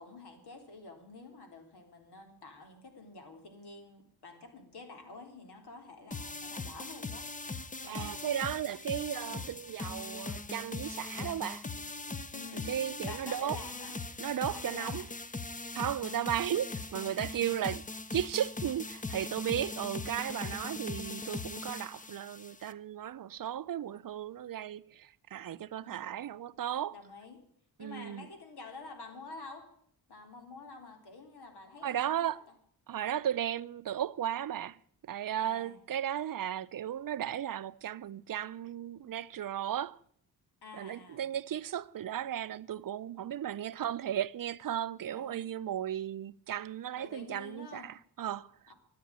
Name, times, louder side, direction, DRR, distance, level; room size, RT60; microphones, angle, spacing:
voice 1, 0.0-7.3 7.8-8.2 9.3-9.5 12.3-12.8 13.0-13.9 14.5-15.1 17.3-17.6 20.6-20.9 25.8-26.2 26.9-27.4 27.8-29.6 30.1-32.4 35.4-35.8 40.6-41.2 45.1-45.4 47.0-47.9, left 3 dB, 75° left, 3.9 m, -49 dB
sound 1, 6.1-22.7, left 3 dB, 20° left, 0.8 m, -40 dB
voice 2, 7.9-11.6 12.5-13.6 14.2-15.1 15.7-17.8 18.1-26.9 27.8-28.3 31.8-32.4 32.9-34.8 35.0-40.0 40.7-48.5, right 10 dB, 55° right, 0.6 m, -35 dB
13.0 x 9.2 x 10.0 m
cardioid pair, 90°, 39 cm